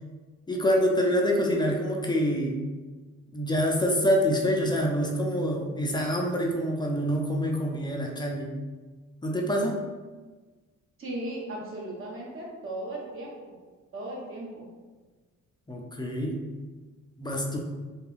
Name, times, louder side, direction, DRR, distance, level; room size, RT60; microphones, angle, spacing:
voice 1, 0.5-2.6 3.3-8.5 9.2-9.8 15.7-16.4 17.2-17.6, equal, 15° left, 0 dB, 0.5 m, -26 dB
voice 2, 11.0-13.6 13.9-14.7, right 1 dB, 45° right, -4 dB, 1.1 m, -37 dB
3.4 x 2.3 x 3.3 m, 1.3 s
cardioid pair, 90°, 30 cm